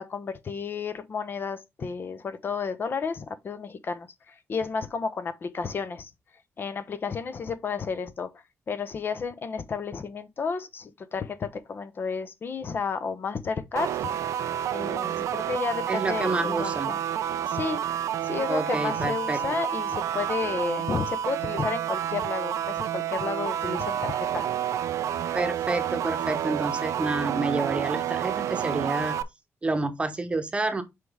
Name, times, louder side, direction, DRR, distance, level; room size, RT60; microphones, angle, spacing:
voice 1, 0.0-6.1 6.6-8.3 8.7-14.0 14.7-17.0 17.5-17.8 18.2-24.5, left 5 dB, 45° left, 0.8 m, -32 dB
sound 1, 13.8-29.2, right 10 dB, 85° right, 0.5 m, -29 dB
voice 2, 15.9-16.9 18.5-19.4 25.3-29.2 29.6-30.8, right 2 dB, 20° right, 1.0 m, -29 dB
5.9 x 4.8 x 3.5 m
cardioid pair, 125°, 5 cm